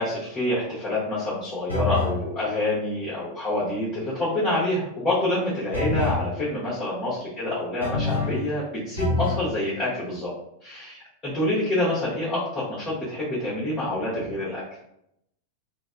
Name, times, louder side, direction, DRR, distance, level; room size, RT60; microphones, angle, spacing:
voice 1, 0.0-10.3 10.6-14.6, left 1 dB, 15° left, -9 dB, 1.0 m, -27 dB
sound 1, 1.7-2.2 5.7-6.3 7.8-8.5 9.0-9.5, left 2 dB, 90° right, 0.7 m, -26 dB
3.2 x 2.1 x 2.5 m, 0.77 s
figure-of-eight pair, 90°, 0 cm